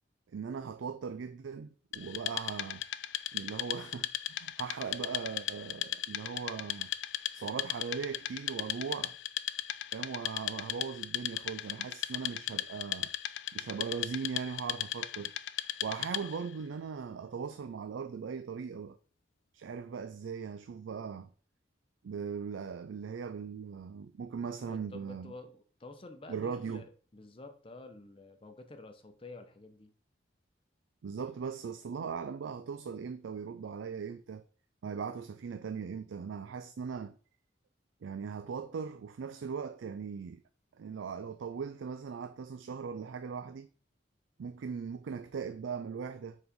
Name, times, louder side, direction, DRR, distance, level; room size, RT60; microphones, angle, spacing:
voice 1, 0.3-2.8 3.3-6.9 7.3-9.2 9.9-13.1 13.5-15.3 15.8-19.0 19.5-21.3 22.0-25.3 26.3-26.8 31.0-34.4 34.8-37.2 38.0-40.4 40.8-43.7 44.4-46.4, right 6 dB, 85° right, 0.4 m, -39 dB
Wood, 1.9-16.5, left 13 dB, 70° left, 0.4 m, -37 dB
voice 2, 24.7-29.9, left 2 dB, 30° left, 0.7 m, -50 dB
4.8 x 4.0 x 5.1 m
head